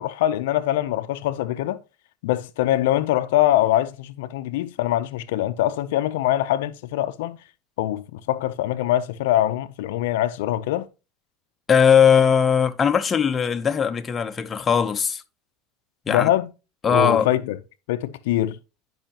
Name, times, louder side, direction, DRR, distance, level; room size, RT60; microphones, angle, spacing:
voice 1, 0.0-1.8 2.2-7.4 7.8-10.9 16.1-16.5 16.9-17.6 17.9-18.6, left 13 dB, 80° left, 0.5 m, -23 dB
voice 2, 11.7-15.2 16.1-16.3 16.8-17.3, left 7 dB, 25° left, 0.7 m, -19 dB
10.5 x 5.5 x 2.9 m
supercardioid pair, 105°, 0 cm